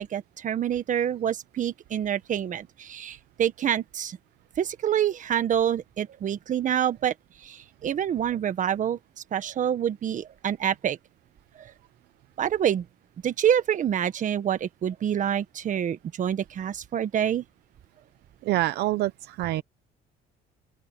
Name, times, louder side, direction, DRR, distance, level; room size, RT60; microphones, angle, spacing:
voice 1, 0.0-4.2 4.6-7.1 7.4-9.0 9.3-11.0 12.4-12.8 13.2-17.4, right 9 dB, 50° right, 1.6 m, -27 dB
voice 2, 18.4-19.6, right 16 dB, 80° right, 0.8 m, -26 dB
open air
cardioid pair, 110°, 17 cm